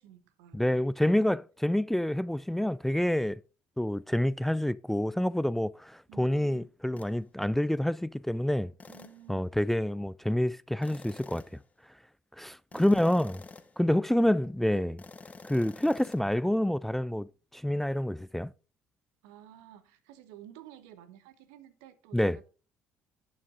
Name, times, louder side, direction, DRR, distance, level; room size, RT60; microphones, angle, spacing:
voice 1, 0.0-0.8 6.1-6.7 8.9-9.5 13.9-15.0 19.2-22.5, right 10 dB, 75° right, 0.9 m, -52 dB
voice 2, 0.5-3.4 3.8-8.7 9.3-11.4 12.4-13.4 13.8-15.0 15.4-18.5 22.1-22.4, left 1 dB, 5° left, 0.3 m, -28 dB
sound 1, 7.0-7.2 8.8-9.3 10.8-11.7 12.7-13.8 15.0-16.2, left 4 dB, 25° left, 1.0 m, -49 dB
11.0 x 6.3 x 3.7 m
hypercardioid pair, 55°, 6 cm